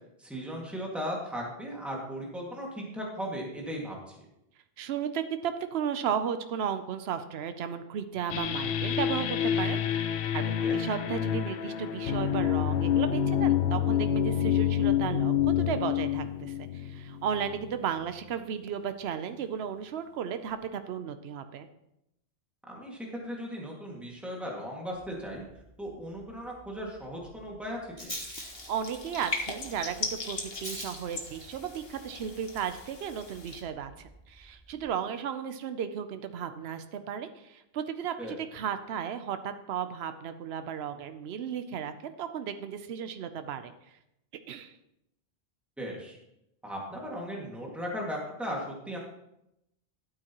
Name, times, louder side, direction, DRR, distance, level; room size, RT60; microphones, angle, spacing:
voice 1, 0.2-4.2 10.6-10.8 22.7-25.4 25.8-28.1 38.2-38.3 45.8-46.2 46.6-49.0, equal, ahead, -2 dB, 2.0 m, -37 dB
voice 2, 4.8-10.4 10.7-21.7 28.7-43.7 44.5-44.8, right 8 dB, 75° right, 9 dB, 0.9 m, -34 dB
sound 1, 8.3-17.7, left 9 dB, 85° left, 0.9 m, -28 dB
Rattle, 24.9-34.9, equal, 30° left, 3.5 m, -47 dB
sound 2, 28.4-33.6, left 3 dB, 65° left, 1.4 m, -39 dB
12.0 x 9.0 x 3.0 m, 0.84 s
omnidirectional pair, 1.1 m